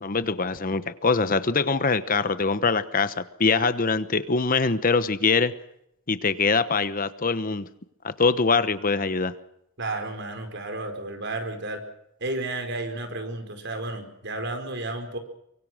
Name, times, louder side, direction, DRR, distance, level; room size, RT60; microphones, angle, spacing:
voice 1, 0.0-5.5 6.1-7.7 8.0-9.3, left 4 dB, 40° left, 13 dB, 1.1 m, -23 dB
voice 2, 9.8-11.8 12.2-15.2, right 2 dB, 55° right, 6 dB, 4.9 m, -32 dB
24.0 x 23.5 x 6.3 m, 0.77 s
head